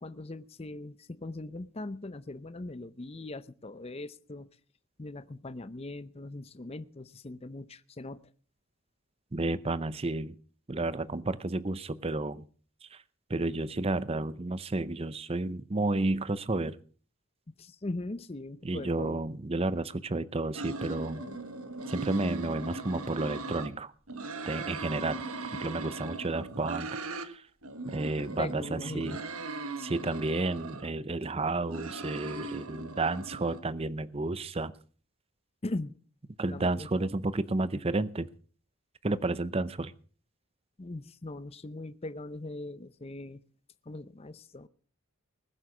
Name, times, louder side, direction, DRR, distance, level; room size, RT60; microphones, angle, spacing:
voice 1, 0.0-4.5 5.0-8.2 17.6-19.2 21.2-21.4 28.2-29.2 35.6-35.9 36.5-36.9 40.8-43.4 43.9-44.7, left 2 dB, 25° left, 14 dB, 0.6 m, -40 dB
voice 2, 9.3-10.3 10.7-12.4 12.8-13.0 13.3-16.8 18.6-21.2 21.9-23.9 24.4-25.2 25.6-26.9 27.2-27.4 27.9-29.2 29.8-34.7 36.4-38.3 39.0-39.9, right 2 dB, 25° right, 16 dB, 0.6 m, -31 dB
sound 1, 20.5-23.7 24.1-27.3 27.6-30.9 31.4-33.6, right 3 dB, 75° right, 1.5 m, -39 dB
20.0 x 8.0 x 6.1 m, 0.42 s
head